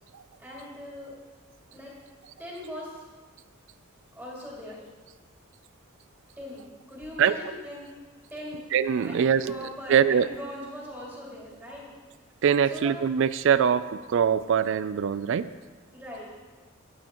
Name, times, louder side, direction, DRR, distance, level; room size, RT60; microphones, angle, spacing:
voice 1, 0.4-1.2 1.7-1.9 2.4-3.0 4.1-4.8 6.4-7.9 8.3-8.6 9.0-11.9 12.7-12.9 15.9-16.3, equal, 5° right, -6 dB, 2.5 m, -40 dB
voice 2, 8.7-9.6 9.9-10.3 12.4-15.5, right 7 dB, 65° right, 15 dB, 0.3 m, -23 dB
16.5 x 8.5 x 3.0 m, 1.4 s
head